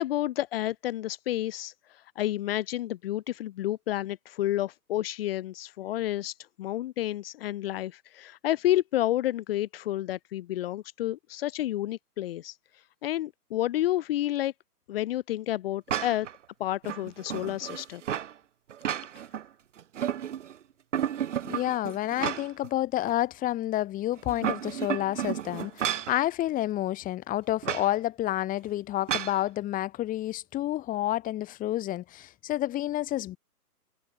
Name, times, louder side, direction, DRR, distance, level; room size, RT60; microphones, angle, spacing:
voice 1, 0.0-12.6 13.0-14.5 14.9-16.3 16.6-18.0, left 14 dB, 35° left, 3.1 m, -30 dB
sound 1, 15.9-16.3 16.8-18.3 18.7-19.4 19.8-20.5 20.9-22.7 23.1-23.2 24.2-26.2 27.6-27.9 29.1-29.4, right 10 dB, 50° right, 5.1 m, -32 dB
voice 2, 21.4-33.4, left 14 dB, 15° left, 4.1 m, -29 dB
figure-of-eight pair, 135°, 48 cm